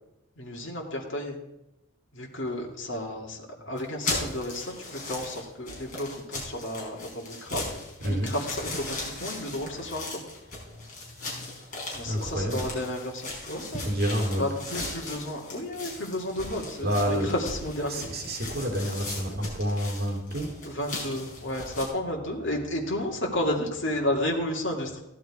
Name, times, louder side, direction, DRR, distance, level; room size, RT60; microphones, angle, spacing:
voice 1, 0.4-1.4 2.1-7.6 8.1-10.2 11.9-13.8 14.4-18.1 20.8-25.0, left 1 dB, 60° left, -2 dB, 2.3 m, -32 dB
sound 1, 3.8-21.9, left 2 dB, 40° left, 5.2 m, -37 dB
voice 2, 8.0-8.4 10.6-11.6 12.0-12.6 13.8-14.4 16.8-17.3 17.9-20.8, equal, 50° right, 1 dB, 2.8 m, -29 dB
15.5 x 11.5 x 4.8 m, 0.91 s
head